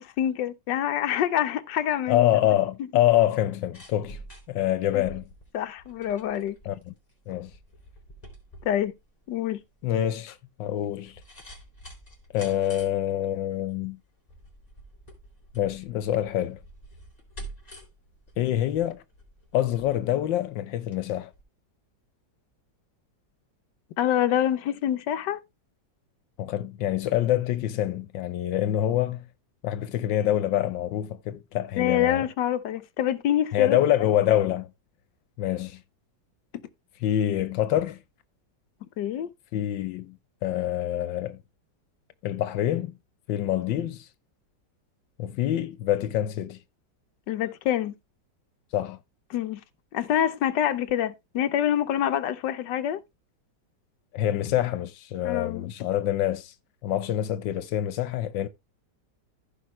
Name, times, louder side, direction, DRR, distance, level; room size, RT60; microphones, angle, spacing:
voice 1, 0.0-2.3 4.9-5.0 5.5-6.6 8.6-8.9 9.3-9.6 24.0-25.4 31.8-33.8 39.0-39.3 47.3-47.9 49.3-49.6 49.9-53.0 55.2-55.7, left 11 dB, 75° left, 1.5 m, -26 dB
voice 2, 2.1-4.2 4.5-5.2 6.6-6.9 7.3-7.5 9.8-11.2 12.3-14.0 15.5-16.6 18.4-19.0 19.5-21.3 26.4-29.3 29.6-32.2 33.5-34.7 35.4-35.8 37.0-38.0 39.5-41.4 42.2-42.9 43.3-44.1 45.2-46.6 48.7-49.0 54.1-56.5 56.8-58.5, left 12 dB, 90° left, 1.5 m, -26 dB
sound 1, 3.5-21.0 21.3-21.4, right 1 dB, 20° left, 3.7 m, -48 dB
15.5 x 5.1 x 3.0 m
omnidirectional pair, 2.0 m